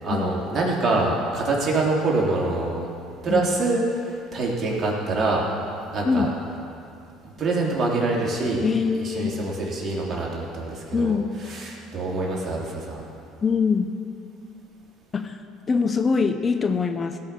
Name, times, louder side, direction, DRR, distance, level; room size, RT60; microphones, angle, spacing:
voice 1, 0.0-2.9 3.2-5.4 5.9-6.3 7.2-8.6 8.9-11.2 11.4-13.0, right 2 dB, 40° right, -3 dB, 3.3 m, -25 dB
voice 2, 8.6-9.4 10.9-11.3 13.4-13.9 15.1-15.4 15.7-17.2, left 5 dB, 35° left, 8 dB, 0.7 m, -23 dB
16.5 x 5.8 x 7.0 m, 2.5 s
hypercardioid pair, 70°, 0 cm